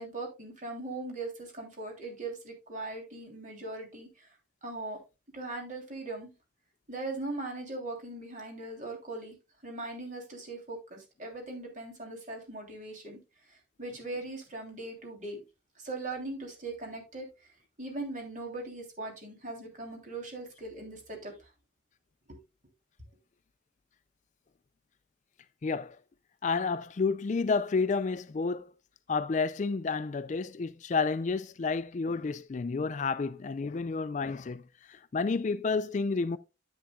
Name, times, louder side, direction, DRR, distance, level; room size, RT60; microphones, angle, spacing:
voice 1, 0.0-4.3 4.6-5.0 5.3-6.3 6.9-9.4 9.6-13.2 13.5-15.4 15.8-17.5 17.8-21.5 22.3-22.4, right 2 dB, 40° right, 3.2 m, -40 dB
voice 2, 25.6-26.0 26.4-28.7 29.1-34.6 34.9-36.4, left 4 dB, 40° left, 0.4 m, -30 dB
10.5 x 8.2 x 2.3 m
head